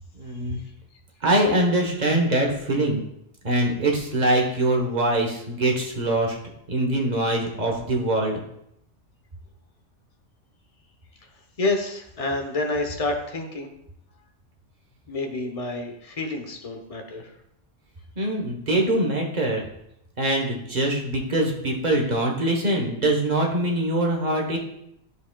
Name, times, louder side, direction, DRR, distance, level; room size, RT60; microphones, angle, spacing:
voice 1, 0.1-0.6 1.2-3.0 3.4-6.4 6.7-8.4 18.2-19.6 20.2-24.6, right 1 dB, 35° right, 1 dB, 1.2 m, -23 dB
voice 2, 11.6-13.7 15.1-17.3, left 2 dB, 30° left, 4 dB, 0.9 m, -28 dB
11.5 x 5.0 x 2.2 m, 0.76 s
omnidirectional pair, 1.3 m